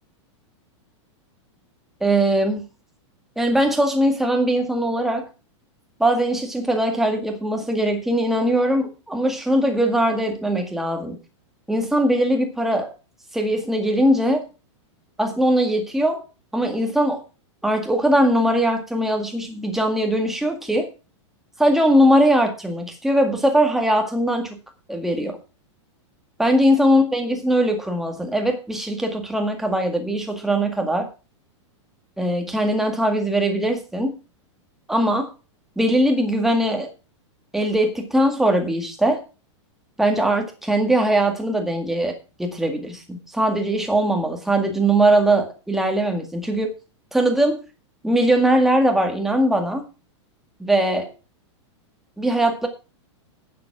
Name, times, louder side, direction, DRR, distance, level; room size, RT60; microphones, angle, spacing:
voice 1, 2.0-2.6 3.4-5.3 6.0-11.2 11.7-12.9 13.3-14.5 15.2-16.2 16.5-17.2 17.6-20.9 21.6-24.6 24.9-25.4 26.4-31.1 32.2-34.1 34.9-35.3 35.8-36.9 37.5-39.2 40.0-46.7 47.1-47.6 48.0-49.8 50.6-51.1 52.2-52.7, right 1 dB, ahead, 3 dB, 1.9 m, -20 dB
11.5 x 7.6 x 6.0 m, 0.32 s
supercardioid pair, 165°, 16 cm